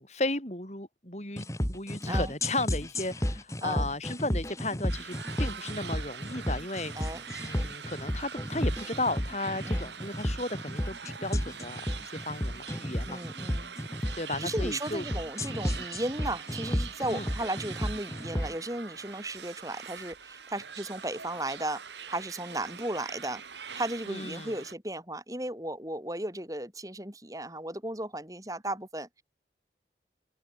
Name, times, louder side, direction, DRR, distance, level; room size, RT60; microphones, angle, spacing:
voice 1, 0.0-6.9 7.4-13.2 14.2-15.0 17.1-17.3 24.1-24.6, left 2 dB, 40° left, 7.5 m, -35 dB
sound 1, 1.4-18.5, equal, 15° left, 3.6 m, -33 dB
sound 2, 4.9-24.7, right 6 dB, 85° right, 4.4 m, -43 dB
voice 2, 13.1-13.7 14.4-23.4 23.7-29.2, right 1 dB, 20° right, 5.8 m, -35 dB
open air
head